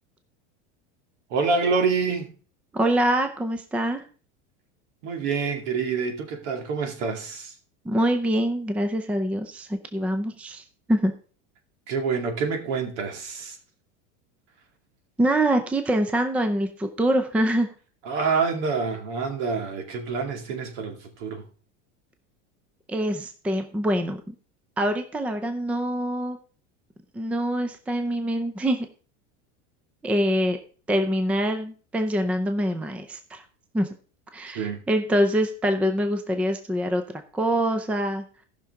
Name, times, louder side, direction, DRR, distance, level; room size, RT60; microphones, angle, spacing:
voice 1, 1.3-2.3 5.0-7.5 11.9-13.6 18.0-21.4 34.5-34.8, right 5 dB, 75° right, 2.4 m, -27 dB
voice 2, 2.7-4.0 7.8-10.6 10.9-11.1 15.2-17.7 22.9-24.3 24.8-26.4 27.1-28.9 30.0-30.6 30.9-33.4 33.7-33.9 34.3-37.0 37.3-38.2, right 1 dB, 5° right, 0.5 m, -24 dB
17.0 x 5.9 x 3.6 m
supercardioid pair, 155°, 36 cm